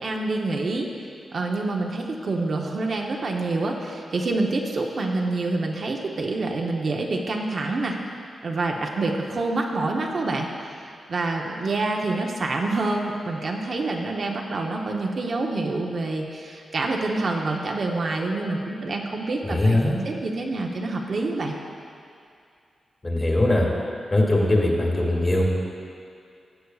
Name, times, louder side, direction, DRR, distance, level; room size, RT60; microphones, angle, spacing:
voice 1, 0.0-0.9 1.3-8.0 8.4-10.5 11.1-19.8 20.0-21.5, right 2 dB, 55° right, 1 dB, 0.8 m, -27 dB
voice 2, 19.4-20.0 23.0-23.7 24.1-25.5, left 1 dB, 30° left, -2 dB, 2.0 m, -21 dB
14.5 x 8.2 x 2.4 m, 2.4 s
cardioid pair, 85°, 0 cm